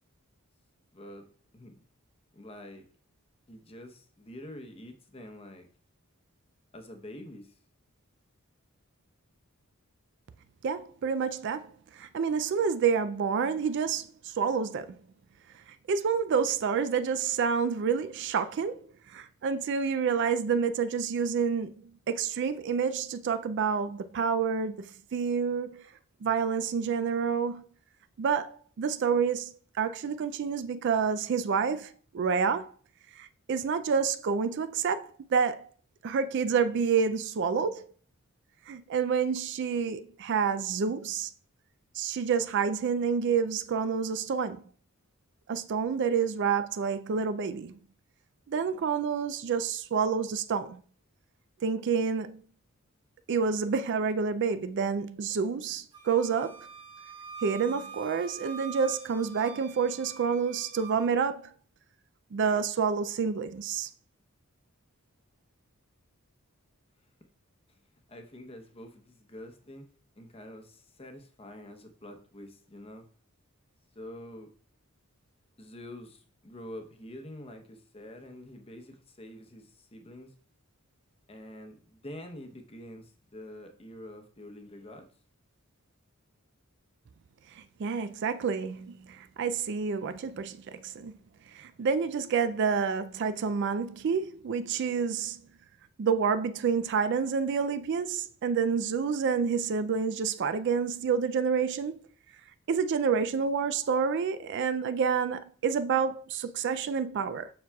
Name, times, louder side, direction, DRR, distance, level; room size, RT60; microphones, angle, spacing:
voice 1, 0.9-1.3 1.5-1.8 2.3-2.8 3.5-5.7 6.7-7.6 68.1-69.8 70.2-73.1 73.9-74.5 75.6-80.3 81.3-85.1, left 1 dB, 25° left, 0.8 m, -46 dB
voice 2, 10.6-15.0 15.9-18.8 19.1-21.7 22.1-25.9 26.2-27.6 28.2-32.7 33.2-35.7 36.0-37.9 38.7-41.3 42.0-44.6 45.5-47.7 48.5-50.8 51.6-52.4 53.3-56.7 57.4-61.5 62.3-63.9 87.6-91.1 91.5-95.4 96.0-102.0 102.7-107.5, right 6 dB, 55° right, 0.3 m, -28 dB
Wind instrument woodwind instrument, 55.9-61.1, right 7 dB, 20° right, 1.1 m, -45 dB
7.1 x 6.1 x 2.3 m
head